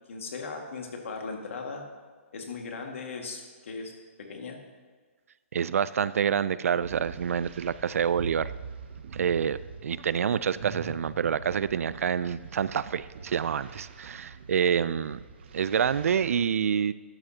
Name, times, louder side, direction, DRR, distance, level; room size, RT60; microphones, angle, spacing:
voice 1, 0.1-1.8 2.3-3.9 4.3-4.6, left 4 dB, 65° left, 2 dB, 1.8 m, -38 dB
voice 2, 5.5-8.5 9.1-15.2 15.5-16.9, right 7 dB, 85° right, 17 dB, 0.4 m, -27 dB
sound 1, 6.8-16.4, right 5 dB, 50° right, 0.8 m, -43 dB
13.0 x 8.9 x 2.8 m, 1.5 s
hypercardioid pair, 175°, 7 cm